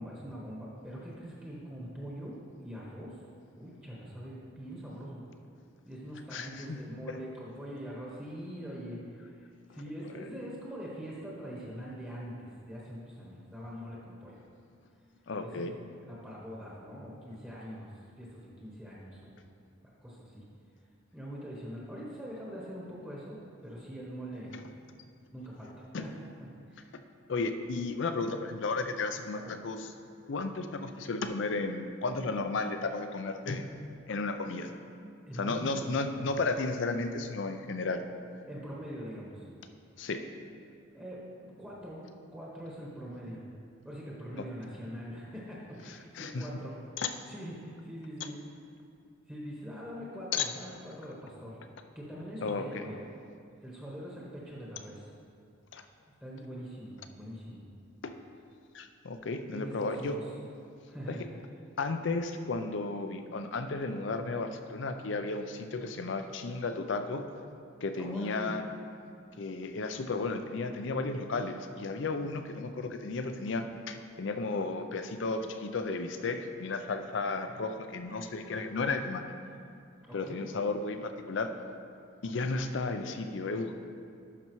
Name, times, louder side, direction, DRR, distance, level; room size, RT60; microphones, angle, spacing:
voice 1, 0.0-2.4 2.6-3.2 3.6-5.2 5.8-9.3 9.7-14.3 15.4-15.7 16.1-17.9 18.2-19.3 19.8-20.4 21.1-24.6 25.3-26.1 26.4-26.9 29.3-29.5 35.3-36.3 38.5-39.5 40.9-42.0 42.3-43.4 43.8-46.7 47.3-48.4 49.3-51.6 51.9-53.0 53.6-55.1 56.2-57.7 59.5-60.3 60.9-61.2 68.0-68.5 80.1-80.4, equal, 10° right, -6 dB, 1.0 m, -43 dB
voice 2, 6.3-6.8 15.3-15.7 24.5-24.6 25.9-26.0 27.3-29.8 30.3-33.6 34.1-34.7 35.3-38.0 40.0-40.2 46.2-46.4 47.0-47.1 50.3-50.5 52.4-52.8 55.7-55.8 58.7-60.2 61.1-61.2 61.8-67.2 67.8-68.6 69.4-79.2 80.1-81.5 82.2-83.8, left 3 dB, 65° left, 7 dB, 0.5 m, -33 dB
11.5 x 5.4 x 3.1 m, 2.4 s
head